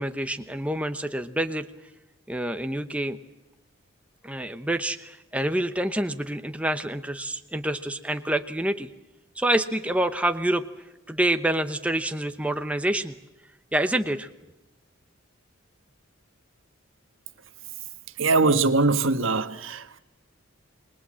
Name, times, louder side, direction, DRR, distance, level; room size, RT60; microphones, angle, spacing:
voice 1, 0.0-1.6 2.3-3.2 4.2-8.9 9.4-10.6 11.1-13.1 13.7-14.3, right 1 dB, 5° right, 0.9 m, -27 dB
voice 2, 18.2-20.0, right 3 dB, 65° right, 1.5 m, -22 dB
28.5 x 21.5 x 7.6 m
head